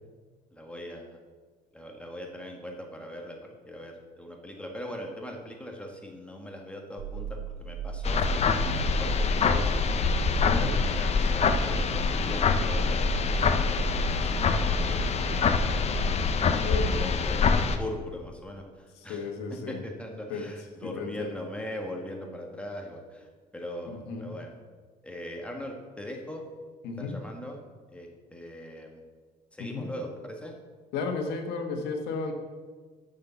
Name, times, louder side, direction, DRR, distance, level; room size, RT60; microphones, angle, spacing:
voice 1, 0.5-1.2 1.7-8.2 9.0-9.7 10.3-16.0 16.7-17.4 17.8-19.3 19.7-24.6 25.0-26.4 27.0-27.6 27.9-29.0 29.5-30.6, left 1 dB, 5° left, 1 dB, 1.5 m, -40 dB
sound 1, 7.0-16.4, right 7 dB, 70° right, 0.4 m, -36 dB
sound 2, 8.0-17.8, left 5 dB, 40° left, 0.7 m, -25 dB
voice 2, 16.6-17.1 19.1-19.8 20.3-20.5 20.8-21.3 23.9-24.3 26.8-27.2 29.6-29.9 30.9-32.3, left 4 dB, 85° left, 4 dB, 1.4 m, -33 dB
6.7 x 6.5 x 7.0 m, 1.5 s
cardioid pair, 110°, 17 cm